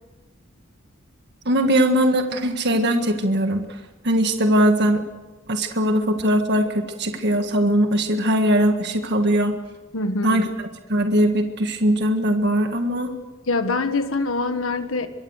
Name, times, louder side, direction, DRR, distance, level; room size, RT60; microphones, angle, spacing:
voice 1, 1.5-5.0 5.5-9.6 10.2-10.5 10.9-13.1, right 1 dB, 55° right, 5 dB, 1.7 m, -20 dB
voice 2, 9.9-10.4 13.5-15.1, left 3 dB, 90° left, 8 dB, 1.6 m, -24 dB
24.0 x 23.5 x 6.5 m, 1.2 s
head